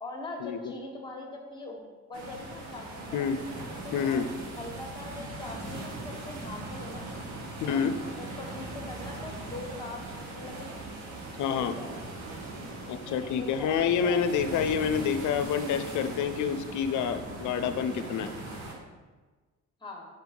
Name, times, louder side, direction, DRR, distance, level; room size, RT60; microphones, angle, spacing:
voice 1, 0.0-1.8 2.1-3.3 3.8-4.2 4.5-7.1 7.7-7.9 8.1-10.9 11.5-12.0 13.1-14.3 19.8-20.1, left 2 dB, 15° left, 1 dB, 1.4 m, -42 dB
sound 1, 2.1-18.7, right 2 dB, 70° right, 1.4 m, -40 dB
voice 2, 3.9-4.3 7.6-7.9 11.4-11.8 12.9-18.3, left 7 dB, 75° left, 9 dB, 0.6 m, -28 dB
5.1 x 4.4 x 4.9 m, 1.3 s
cardioid pair, 90°, 30 cm